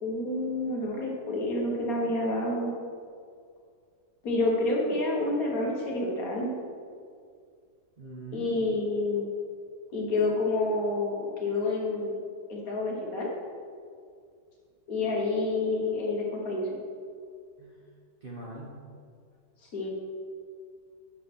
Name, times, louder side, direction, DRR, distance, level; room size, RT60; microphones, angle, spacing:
voice 1, 0.0-2.7 4.2-6.5 8.3-9.3 9.9-12.1 12.5-13.3 14.9-16.7 19.7-19.9, left 2 dB, 55° left, -2 dB, 1.6 m, -28 dB
voice 2, 8.0-8.7 17.6-17.8 18.2-18.7, right 2 dB, 40° right, -5 dB, 1.0 m, -42 dB
7.4 x 5.9 x 4.2 m, 2.2 s
omnidirectional pair, 1.9 m